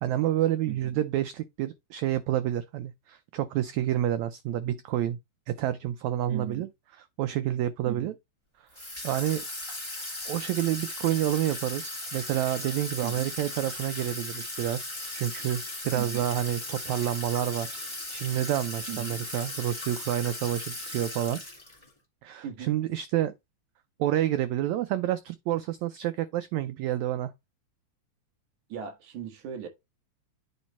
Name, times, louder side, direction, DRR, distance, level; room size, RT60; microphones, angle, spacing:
voice 1, 0.0-5.2 5.5-6.7 7.2-8.1 9.0-9.4 10.3-17.7 18.1-21.4 22.2-23.3 24.0-27.3, right 12 dB, 90° right, 1.6 m, -29 dB
voice 2, 6.3-6.7 7.9-8.1 13.0-13.3 15.9-16.3 18.9-19.2 22.4-22.7 28.7-29.7, right 9 dB, 65° right, 2.9 m, -38 dB
Water tap faucet / Sink (filling or washing), 8.7-21.9, left 1 dB, 15° left, 1.3 m, -37 dB
9.0 x 3.1 x 4.1 m
omnidirectional pair, 3.8 m